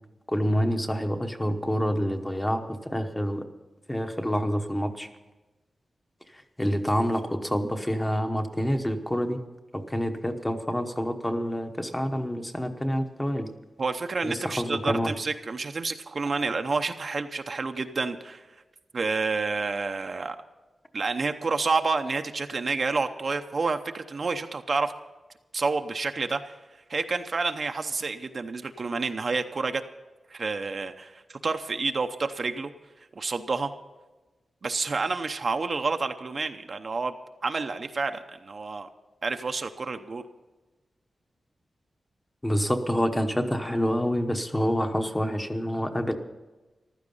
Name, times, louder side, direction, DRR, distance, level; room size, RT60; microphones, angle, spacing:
voice 1, 0.3-3.4 3.9-5.1 6.3-9.4 9.7-13.5 14.2-15.1 42.4-46.1, equal, 10° left, 5 dB, 1.0 m, -27 dB
voice 2, 13.8-18.4 18.9-20.4 20.9-24.9 25.5-26.5 26.9-29.8 30.3-32.7 33.2-33.7 34.6-37.1 37.4-38.9 39.2-40.2, right 4 dB, 45° right, 7 dB, 0.7 m, -29 dB
15.0 x 12.5 x 5.5 m, 1.2 s
wide cardioid pair, 155°, 0 cm